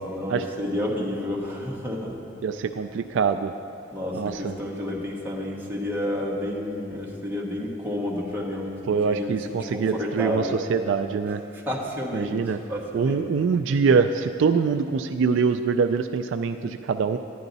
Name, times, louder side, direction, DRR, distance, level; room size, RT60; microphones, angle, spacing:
voice 1, 0.0-2.2 3.9-10.6 11.7-12.4 12.7-13.3, left 1 dB, 10° right, -4 dB, 1.3 m, -30 dB
voice 2, 2.4-3.5 4.1-4.5 8.9-11.4 12.1-12.6 12.9-17.2, right 5 dB, 65° right, 9 dB, 0.3 m, -24 dB
10.5 x 10.0 x 4.0 m, 2.8 s
head